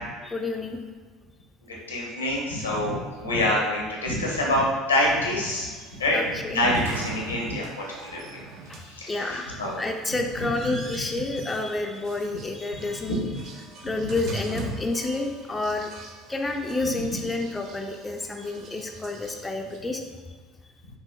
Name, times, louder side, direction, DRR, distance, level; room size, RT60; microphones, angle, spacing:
voice 1, 0.2-0.8 6.1-6.7 8.7-13.2 13.8-15.9 16.3-20.0, left 2 dB, 15° left, 3 dB, 0.4 m, -29 dB
voice 2, 1.7-6.2 6.5-8.4 8.8-9.8 10.6-10.7 12.7-12.8 13.1-13.3 13.9-14.0, left 1 dB, 85° left, -2 dB, 0.7 m, -26 dB
sound 1, 5.5-19.8, right 2 dB, 50° right, 0.5 m, -42 dB
5.3 x 2.5 x 2.3 m, 1.5 s
figure-of-eight pair, 65°, 0 cm